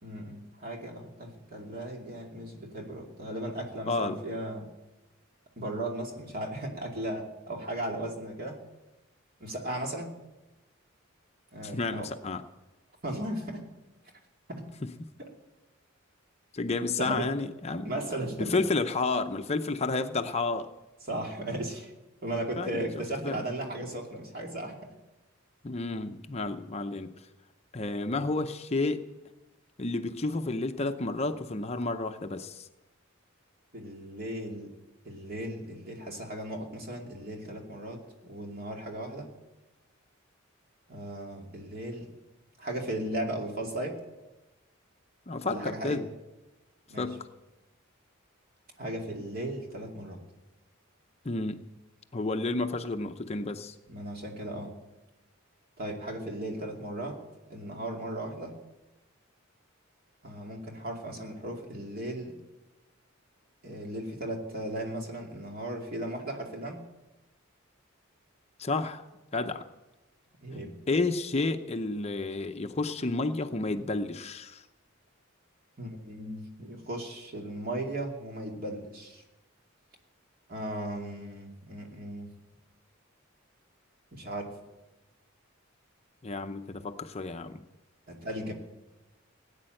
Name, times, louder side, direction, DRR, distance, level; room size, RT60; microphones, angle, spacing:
voice 1, 0.0-4.7 5.6-8.6 9.4-10.1 11.5-12.1 13.0-13.6 14.5-14.6 15.2-15.3 17.0-17.3 17.8-18.6 21.1-21.9 22.2-24.8 33.7-34.8 35.0-39.3 40.9-42.1 42.6-44.0 45.5-46.0 46.9-47.1 48.8-50.2 53.9-54.7 55.8-57.2 57.5-58.5 60.2-62.4 63.6-66.8 70.4-70.8 75.8-79.2 80.5-82.3 84.1-84.5 88.1-88.5, right 1 dB, 45° right, 1 dB, 2.7 m, -36 dB
voice 2, 3.9-4.2 11.6-12.4 16.5-17.9 18.4-20.7 22.6-22.9 23.2-23.4 25.6-27.1 27.7-29.1 29.8-32.7 45.3-46.1 47.0-47.3 51.2-51.7 52.1-53.7 68.6-69.1 69.3-69.7 70.9-74.6 86.2-87.6, left 3 dB, 30° left, 7 dB, 0.7 m, -31 dB
17.5 x 9.7 x 7.7 m, 1.0 s
head